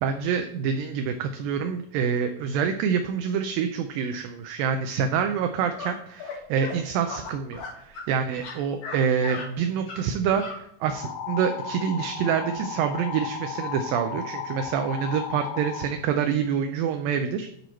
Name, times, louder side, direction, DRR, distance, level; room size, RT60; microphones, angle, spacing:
voice 1, 0.0-17.5, right 7 dB, 80° right, 6 dB, 2.1 m, -26 dB
sound 1, 5.8-5.9 6.2-6.4 6.6-6.8 7.1-8.1 8.3-9.0 9.2-9.5 9.9-10.0 10.3-10.6, left 4 dB, 50° left, 1.5 m, -36 dB
sound 2, 10.8-15.9, left 7 dB, 75° left, 1.7 m, -34 dB
9.3 x 4.5 x 4.4 m, 0.72 s
omnidirectional pair, 4.4 m